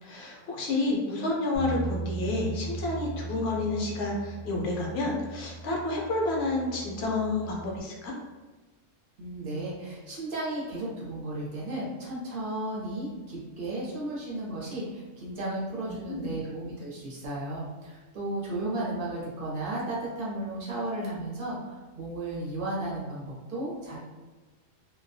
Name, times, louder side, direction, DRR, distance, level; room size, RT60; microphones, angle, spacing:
voice 1, 0.0-8.1 15.9-16.4, left 2 dB, 65° left, -1 dB, 0.8 m, -30 dB
Bass guitar, 1.5-7.8, right 4 dB, 20° left, 0.3 m, -38 dB
voice 2, 9.2-24.0, right 1 dB, 50° right, -5 dB, 0.7 m, -34 dB
2.2 x 2.2 x 2.6 m, 1.3 s
omnidirectional pair, 1.3 m